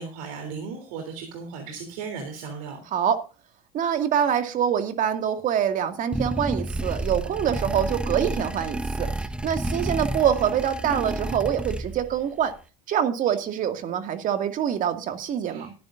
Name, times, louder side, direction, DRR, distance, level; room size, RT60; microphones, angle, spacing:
voice 1, 0.0-2.8 15.4-15.7, right 5 dB, 75° right, 3.4 m, -36 dB
voice 2, 3.7-9.1 9.4-12.5 12.9-15.7, right 9 dB, 50° right, 2.2 m, -25 dB
sound 1, 6.1-12.2, right 1 dB, 5° right, 0.8 m, -30 dB
17.5 x 10.5 x 2.6 m
supercardioid pair, 100°, 18 cm